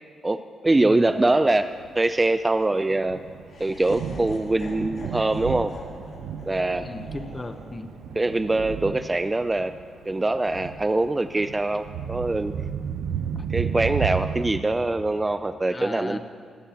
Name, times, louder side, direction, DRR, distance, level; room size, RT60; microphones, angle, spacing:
voice 1, 0.2-1.7 2.0-3.2 3.6-5.8 6.5-6.9 8.2-9.7 10.1-12.5 13.5-16.2, right 2 dB, 15° right, 10 dB, 0.3 m, -23 dB
voice 2, 0.8-1.1 6.8-7.9 13.3-13.5 15.7-16.2, left 2 dB, 20° left, 9 dB, 0.8 m, -36 dB
Thunder, 0.9-14.6, right 7 dB, 85° right, 0.6 m, -33 dB
Laughter, 3.5-9.6, left 2 dB, 60° left, 3.2 m, -45 dB
24.0 x 14.5 x 2.9 m, 2.1 s
cardioid pair, 130°, 0 cm